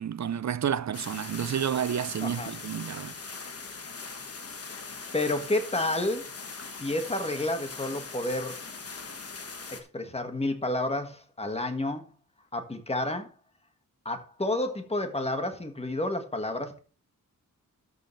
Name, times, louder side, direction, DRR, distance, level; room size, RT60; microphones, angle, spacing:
voice 1, 0.0-3.1, right 9 dB, 55° right, 0.5 m, -30 dB
sound 1, 0.9-9.8, left 4 dB, 45° left, 1.4 m, -41 dB
voice 2, 2.2-2.5 5.1-6.2 6.8-8.6 9.7-12.1 12.5-13.3 14.0-16.8, left 1 dB, 20° left, 1.5 m, -30 dB
13.0 x 7.0 x 3.2 m
wide cardioid pair, 150°, 33 cm